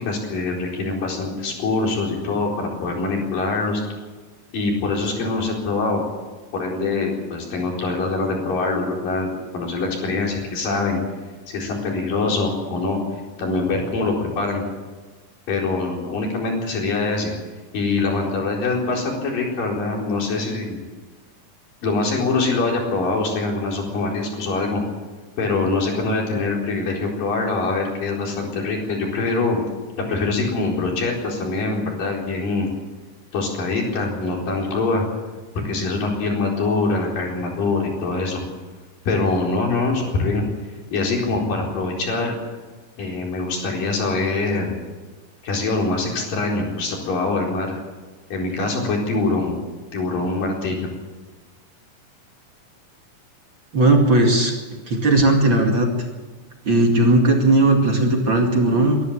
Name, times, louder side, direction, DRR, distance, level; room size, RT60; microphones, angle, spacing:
voice 1, 0.0-3.8 4.5-6.0 6.5-11.0 11.5-13.0 13.4-14.6 15.5-17.3 17.7-20.8 21.8-24.8 25.4-29.6 30.0-32.7 33.3-35.1 35.5-38.4 39.1-40.4 40.9-42.4 43.0-44.8 45.4-47.8 48.3-49.6 49.9-50.9, left 3 dB, 85° left, -1 dB, 6.1 m, -24 dB
voice 2, 53.7-54.5 54.9-55.9 56.7-59.0, right 2 dB, 40° right, 2 dB, 2.7 m, -17 dB
24.0 x 13.0 x 8.8 m, 1.3 s
omnidirectional pair, 3.8 m